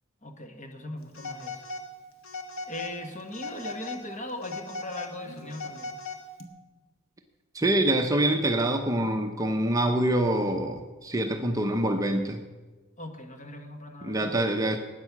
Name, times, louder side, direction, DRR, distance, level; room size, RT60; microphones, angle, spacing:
voice 1, 0.2-1.6 2.7-5.9 13.0-14.8, left 1 dB, 35° left, 5 dB, 1.4 m, -39 dB
Telephone, 1.1-1.9 2.2-3.0 3.3-4.0 4.4-6.4, left 3 dB, 75° left, 1.4 m, -38 dB
voice 2, 7.5-12.4 14.0-14.8, right 1 dB, 15° right, 4 dB, 0.7 m, -25 dB
12.5 x 9.7 x 6.0 m, 1.3 s
head